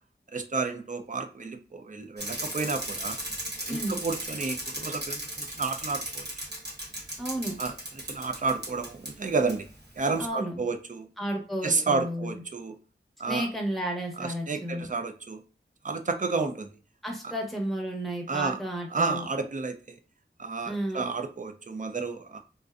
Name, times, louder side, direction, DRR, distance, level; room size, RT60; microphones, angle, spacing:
voice 1, 0.3-3.2 3.7-6.3 7.6-9.7 10.0-11.1 11.6-12.8 13.2-13.5 14.2-15.4 15.8-16.7 17.2-17.4 18.3-18.6 18.9-20.0 20.4-22.4, right 4 dB, 40° right, 7 dB, 0.4 m, -31 dB
Bicycle, 2.2-9.1 9.5-9.6, right 1 dB, 55° right, 1.0 m, -36 dB
voice 2, 7.2-7.6 10.2-10.5 11.2-12.3 13.3-14.8 17.0-19.2 20.6-21.0, right 1 dB, ahead, 0 dB, 0.8 m, -32 dB
2.5 x 2.0 x 2.4 m, 0.37 s
wide cardioid pair, 55°, 20 cm